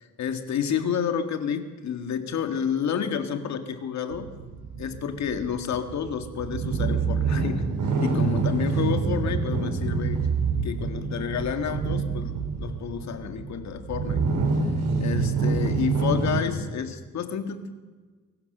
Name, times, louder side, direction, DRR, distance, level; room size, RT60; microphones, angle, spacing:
voice 1, 0.0-4.3 4.8-10.3 10.6-14.3 15.0-17.7, left 7 dB, 60° left, 8 dB, 2.0 m, -30 dB
sound 1, 4.1-16.4, right 4 dB, 90° right, 4.4 m, -26 dB
23.5 x 18.0 x 6.7 m, 1.4 s
cardioid pair, 170°, 31 cm